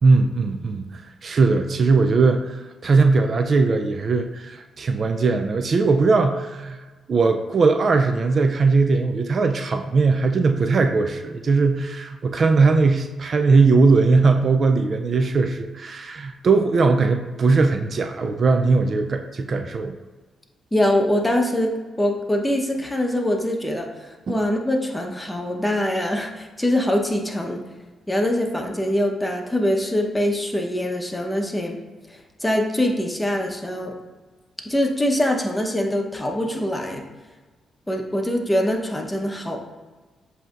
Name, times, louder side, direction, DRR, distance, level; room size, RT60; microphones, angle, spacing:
voice 1, 0.0-6.8 7.1-20.0 24.3-24.4, right 4 dB, 55° right, 6 dB, 0.3 m, -19 dB
voice 2, 20.7-27.6 28.1-31.8 32.4-33.9 34.6-37.0 37.9-39.6, left 1 dB, 15° left, 2 dB, 0.9 m, -23 dB
7.5 x 2.7 x 2.4 m, 1.3 s
supercardioid pair, 55°, 0 cm